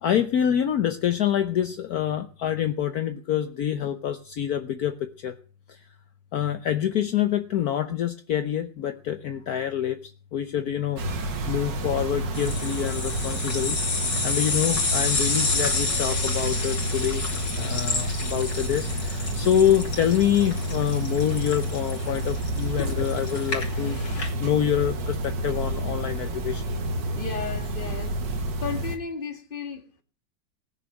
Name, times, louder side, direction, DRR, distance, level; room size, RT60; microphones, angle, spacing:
voice 1, 0.0-5.3 5.7-5.8 6.3-13.8 14.2-17.2 17.6-26.6, left 10 dB, 65° left, 1.3 m, -26 dB
sound 1, 11.0-29.0, right 1 dB, 80° right, 2.3 m, -30 dB
sound 2, 12.3-24.3, left 3 dB, 85° left, 3.6 m, -30 dB
voice 2, 27.1-28.2 28.6-30.0, left 5 dB, 30° left, 2.0 m, -34 dB
18.5 x 6.7 x 9.0 m
omnidirectional pair, 1.9 m